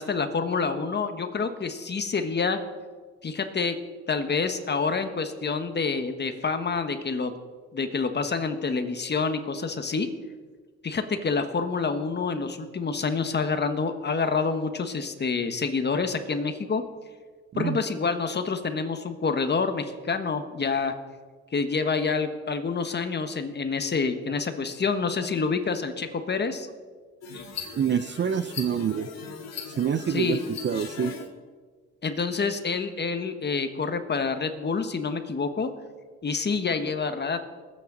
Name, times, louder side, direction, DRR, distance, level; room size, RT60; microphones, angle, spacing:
voice 1, 0.0-2.6 3.2-3.8 4.1-7.3 7.7-10.1 10.8-16.8 17.6-20.9 21.5-26.7 30.1-30.4 32.0-35.7 36.2-37.4, left 4 dB, 35° left, 8 dB, 1.3 m, -27 dB
voice 2, 17.5-17.9 24.3-24.4 27.8-29.1 29.7-31.1, right 7 dB, 40° right, 14 dB, 0.5 m, -27 dB
sound 1, 27.2-31.3, left 5 dB, 60° left, 2.1 m, -39 dB
20.5 x 8.8 x 4.0 m, 1.5 s
cardioid pair, 90°, 30 cm